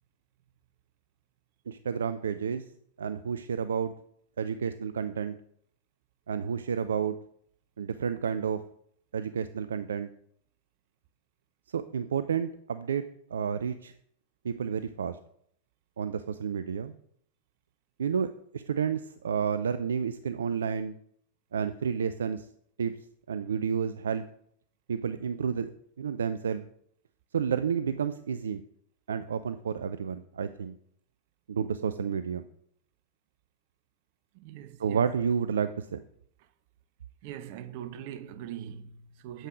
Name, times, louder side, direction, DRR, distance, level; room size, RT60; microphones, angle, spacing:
voice 1, 1.7-2.6 3.0-3.9 4.4-5.4 6.3-7.2 7.8-8.6 9.1-10.1 11.7-13.0 13.3-13.9 14.4-15.2 16.0-16.9 18.0-18.3 18.5-20.9 21.5-22.5 22.8-22.9 23.3-24.2 24.9-25.7 26.0-26.6 27.3-28.6 29.1-30.7 31.5-32.4 34.8-36.0, right 7 dB, 65° right, 0.4 m, -30 dB
voice 2, 34.3-35.1 37.2-39.5, right 10 dB, 50° right, 0.8 m, -41 dB
9.1 x 7.5 x 5.0 m
figure-of-eight pair, 90°, 0 cm